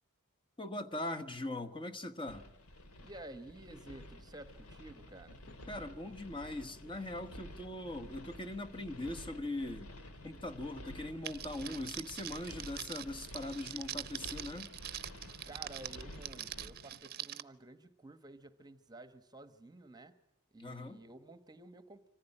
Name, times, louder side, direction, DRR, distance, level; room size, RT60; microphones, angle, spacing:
voice 1, 0.6-2.5 5.7-9.9 10.2-14.7 20.6-21.0, left 1 dB, 25° left, 7 dB, 1.2 m, -41 dB
sound 1, 2.3-16.7, left 1 dB, 70° left, 2.2 m, -51 dB
voice 2, 3.0-5.4 15.5-20.1 20.5-22.1, right 2 dB, 20° right, 11 dB, 1.1 m, -52 dB
sound 2, 3.5-17.0, left 1 dB, 50° left, 1.1 m, -60 dB
Crackle, 11.2-17.4, right 11 dB, 45° right, 0.8 m, -44 dB
25.0 x 15.0 x 9.9 m, 0.83 s
head